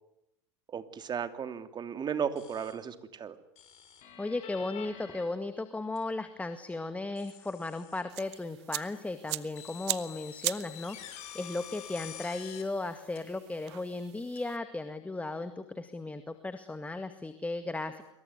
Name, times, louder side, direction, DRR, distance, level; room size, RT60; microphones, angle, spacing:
voice 1, 0.7-3.4, right 7 dB, 30° right, 9 dB, 3.0 m, -35 dB
sound 1, 2.4-2.7 3.6-5.2 6.0-6.1 7.2-8.0 8.4-8.5 9.5-12.6 13.1-13.2 14.3-14.4, left 11 dB, 50° left, 5.9 m, -47 dB
voice 2, 4.2-18.0, left 2 dB, 10° left, 9 dB, 2.0 m, -36 dB
sound 2, 8.1-14.6, right 18 dB, 65° right, 1.4 m, -41 dB
26.0 x 23.5 x 9.6 m, 0.82 s
hypercardioid pair, 95°, 15 cm